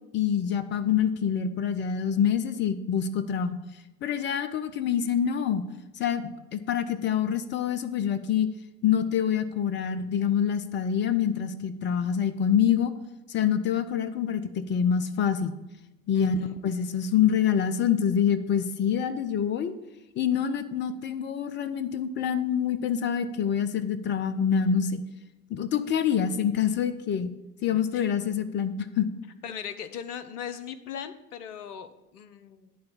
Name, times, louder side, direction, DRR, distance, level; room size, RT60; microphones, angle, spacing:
voice 1, 0.1-3.6 4.0-5.6 5.9-8.5 8.8-12.9 13.3-15.5 16.1-19.8 20.2-25.0 25.5-27.3 27.6-29.1, left 8 dB, 25° left, 11 dB, 0.5 m, -26 dB
voice 2, 16.1-16.6 27.7-28.1 29.4-32.7, left 8 dB, 70° left, 11 dB, 0.9 m, -39 dB
11.0 x 3.8 x 7.2 m, 0.98 s
figure-of-eight pair, 75°, 48 cm